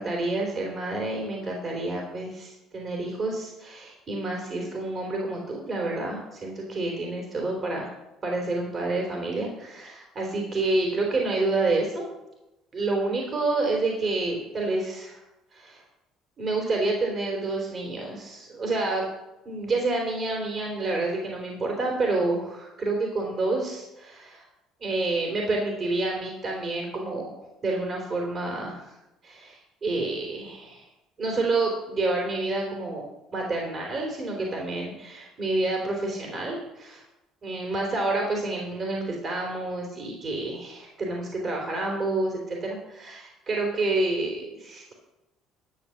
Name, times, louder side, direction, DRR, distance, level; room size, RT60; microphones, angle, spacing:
voice 1, 0.0-7.9 8.2-12.1 12.7-15.2 15.5-15.8 16.4-19.1 19.4-24.4 24.8-27.3 27.6-28.9 29.2-30.8 31.2-33.0 33.3-37.0 37.4-44.9, right 2 dB, 40° right, 0 dB, 3.5 m, -28 dB
12.0 x 6.9 x 7.1 m, 0.97 s
supercardioid pair, 90°, 0 cm